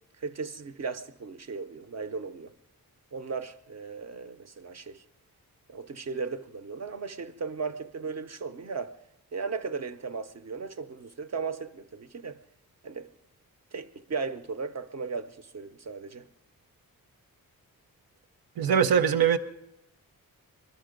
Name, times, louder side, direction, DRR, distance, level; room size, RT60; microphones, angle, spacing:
voice 1, 0.2-2.5 3.1-5.0 5.7-9.0 9.3-12.4 12.8-13.1 13.7-16.3, right 4 dB, 45° right, 0.6 m, -36 dB
voice 2, 18.6-19.4, right 7 dB, 85° right, 0.9 m, -22 dB
22.0 x 12.5 x 5.1 m
wide cardioid pair, 155°, 36 cm